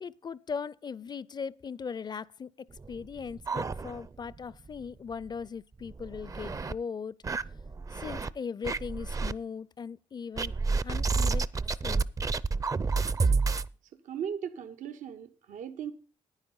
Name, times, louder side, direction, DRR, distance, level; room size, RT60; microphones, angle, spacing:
voice 1, 0.0-7.2 7.9-10.6 10.8-11.5 11.8-12.1, left 6 dB, 35° left, 0.4 m, -39 dB
sound 1, 2.8-4.3 4.7-4.8 5.1-5.2 5.8-6.7 7.2-8.3 8.6-9.3 10.4-13.7, right 4 dB, 25° right, 0.5 m, -30 dB
voice 2, 14.0-15.9, right 8 dB, 80° right, 0.8 m, -37 dB
10.0 x 9.7 x 5.3 m
cardioid pair, 90°, 13 cm